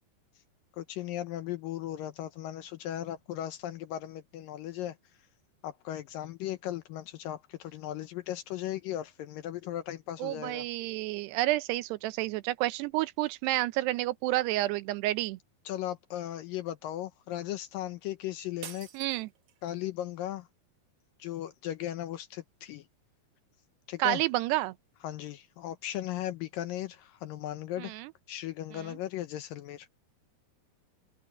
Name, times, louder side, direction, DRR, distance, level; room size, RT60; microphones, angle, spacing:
voice 1, 0.8-5.0 5.6-10.7 15.7-18.9 19.6-20.5 21.2-22.9 23.9-24.2 25.0-27.9 28.3-29.9, left 12 dB, 75° left, 2.2 m, -37 dB
voice 2, 10.2-15.4 18.9-19.3 24.0-24.7 27.8-28.1 28.7-29.0, right 17 dB, 90° right, 2.9 m, -30 dB
sound 1, 18.6-19.9, right 10 dB, 60° right, 2.5 m, -47 dB
omnidirectional pair, 4.7 m